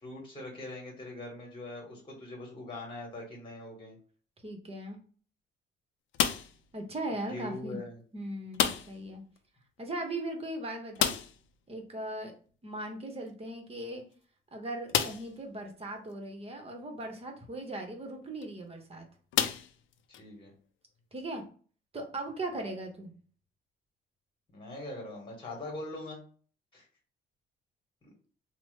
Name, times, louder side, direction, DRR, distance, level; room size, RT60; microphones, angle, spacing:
voice 1, 0.0-4.0 7.3-8.0 20.1-20.5 24.5-26.2 26.7-26.9 28.0-28.1, left 2 dB, 25° left, -1 dB, 1.4 m, -42 dB
voice 2, 4.4-5.0 6.7-7.8 8.1-9.2 9.8-11.2 11.7-12.3 12.6-14.0 14.5-19.1 21.1-21.4 21.9-23.1, right 1 dB, 30° right, 3 dB, 1.0 m, -38 dB
sound 1, 6.1-6.7 8.5-9.1 9.4-9.5 9.8-9.9 10.9-11.5 13.3-13.4 14.0-14.1 14.9-15.4 16.1-16.2 18.2-18.4 19.3-20.2, left 9 dB, 75° left, 0.4 m, -30 dB
3.0 x 2.1 x 3.2 m, 0.41 s
cardioid pair, 90°, 20 cm